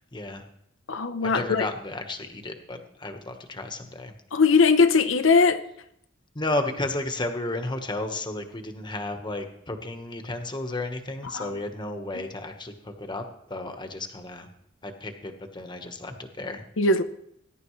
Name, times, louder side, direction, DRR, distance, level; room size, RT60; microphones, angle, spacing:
voice 1, 0.1-0.4 1.2-4.1 6.3-14.5 14.8-16.6, left 2 dB, 25° left, 1.2 m, -33 dB
voice 2, 0.9-1.7 4.3-5.6 11.3-11.5 16.8-17.0, left 4 dB, 80° left, 0.9 m, -20 dB
20.0 x 11.0 x 3.2 m
head